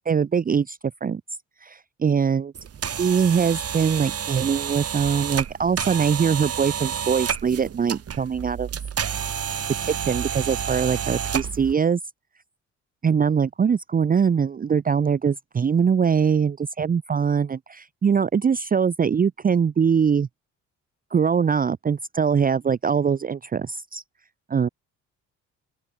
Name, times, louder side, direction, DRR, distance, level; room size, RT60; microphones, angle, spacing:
voice 1, 0.1-1.2 1.6-2.5 3.0-8.7 9.8-12.0 13.0-20.3 21.1-24.0 24.5-24.7, right 6 dB, 30° right, 0.7 m, -22 dB
sound 1, 2.6-11.7, right 8 dB, 50° right, 3.3 m, -30 dB
open air
cardioid pair, 90°, 30 cm